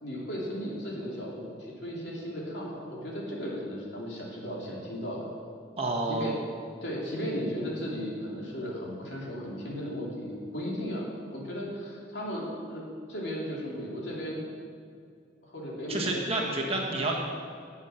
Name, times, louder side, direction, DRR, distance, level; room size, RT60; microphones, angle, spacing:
voice 1, 0.0-5.3 6.1-6.3 6.8-12.8 13.1-14.4 15.4-16.5, equal, 60° left, -4 dB, 3.3 m, -35 dB
voice 2, 5.8-6.3 15.9-17.2, right 2 dB, 30° right, -1 dB, 1.6 m, -29 dB
17.5 x 7.2 x 5.9 m, 2.3 s
head